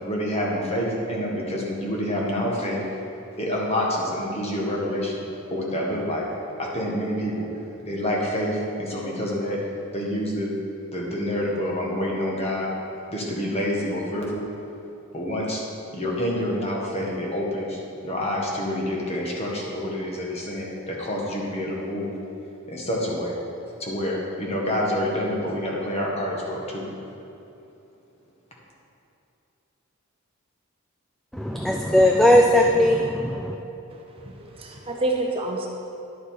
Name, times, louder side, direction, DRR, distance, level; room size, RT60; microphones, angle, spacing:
voice 1, 0.0-2.8 3.4-5.2 5.5-6.3 6.6-7.5 7.8-9.6 9.9-10.5 10.9-12.7 13.1-14.4 15.1-15.6 15.9-22.1 22.7-23.3 23.8-26.9, equal, 30° left, -3 dB, 1.5 m, -27 dB
voice 2, 31.3-33.6, left 1 dB, ahead, 1 dB, 0.3 m, -18 dB
voice 3, 33.9-35.7, right 2 dB, 25° right, 0 dB, 0.8 m, -29 dB
11.0 x 6.5 x 4.8 m, 2.8 s
head